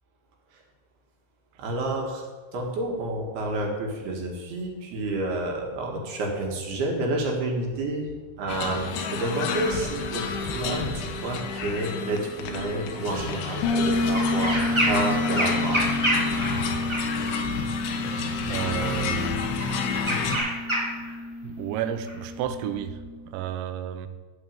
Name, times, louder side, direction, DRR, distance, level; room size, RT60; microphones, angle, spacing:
voice 1, 1.6-2.3 2.5-8.1 8.4-14.6 14.9-15.9, right 2 dB, 65° right, 0 dB, 3.7 m, -29 dB
sound 1, 8.5-20.4, left 5 dB, 70° left, 2.9 m, -30 dB
Bass guitar, 13.6-23.3, left 2 dB, 85° left, 5.5 m, -30 dB
sound 2, 14.1-15.1 15.3-17.4 18.4-18.8 19.6-21.1 22.1-22.2, equal, 45° right, 0.3 m, -27 dB
voice 2, 18.5-19.4 21.4-23.0 23.3-24.1, right 10 dB, 85° right, 10 dB, 3.1 m, -31 dB
15.0 x 5.4 x 8.9 m, 1.4 s
omnidirectional pair, 5.2 m